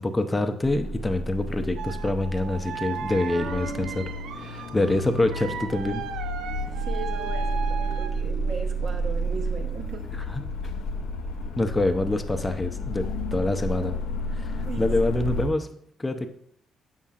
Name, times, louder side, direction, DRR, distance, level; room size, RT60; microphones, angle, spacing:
voice 1, 0.0-4.0 4.4-6.0 10.3-10.4 11.6-14.0 14.3-15.7 16.0-16.3, left 2 dB, 20° left, 7 dB, 0.6 m, -26 dB
sound 1, 0.6-15.5, equal, 85° left, 0.5 m, -31 dB
sound 2, 1.8-8.2, right 7 dB, 85° right, 0.4 m, -36 dB
sound 3, 6.4-11.5, right 4 dB, 35° right, 1.1 m, -47 dB
voice 2, 6.6-10.1 14.6-14.9, right 4 dB, 60° right, 4 dB, 0.9 m, -37 dB
7.3 x 5.5 x 2.5 m, 0.65 s
cardioid pair, 90°, 0 cm